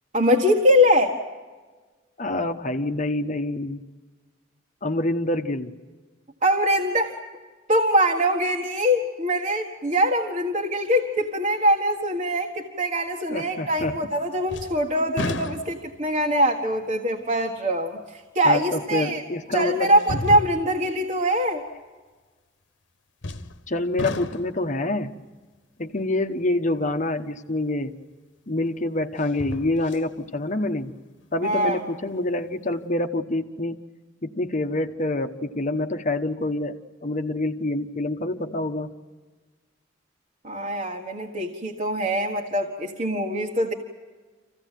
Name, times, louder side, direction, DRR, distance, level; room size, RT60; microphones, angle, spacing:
voice 1, 0.1-1.2 6.4-7.2 7.7-19.2 19.5-21.6 31.4-31.8 40.4-43.7, equal, 40° right, 1 dB, 1.7 m, -23 dB
voice 2, 2.2-3.8 4.8-5.7 13.3-14.0 18.4-19.9 23.7-25.1 25.8-28.0 28.5-30.9 31.3-33.8 34.2-38.9, left 2 dB, 40° left, 6 dB, 1.1 m, -26 dB
sound 1, 13.8-14.2 14.5-16.1 16.7-16.8 18.6-18.7 20.0-20.9 23.2-23.7 24.0-24.7 27.7-27.8 29.2-30.1 30.5-30.6, left 2 dB, 65° left, 1.2 m, -33 dB
27.0 x 16.0 x 9.2 m, 1.3 s
head